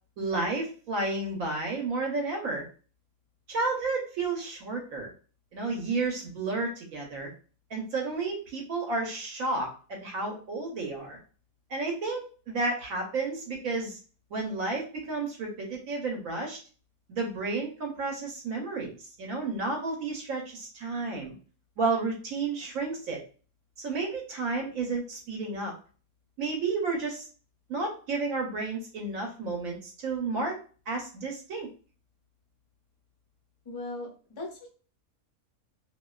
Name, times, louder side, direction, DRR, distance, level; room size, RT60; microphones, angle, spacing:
voice 1, 0.2-2.7 3.5-5.1 5.5-7.3 7.7-11.2 11.7-14.0 14.3-16.6 17.1-18.9 19.2-21.3 21.8-23.2 23.8-25.7 26.4-27.3 27.7-30.6 30.9-31.7, right 3 dB, 70° right, 0 dB, 1.0 m, -31 dB
voice 2, 33.7-34.7, left 2 dB, 50° left, -1 dB, 0.3 m, -38 dB
2.6 x 2.2 x 2.2 m, 0.38 s
omnidirectional pair, 1.6 m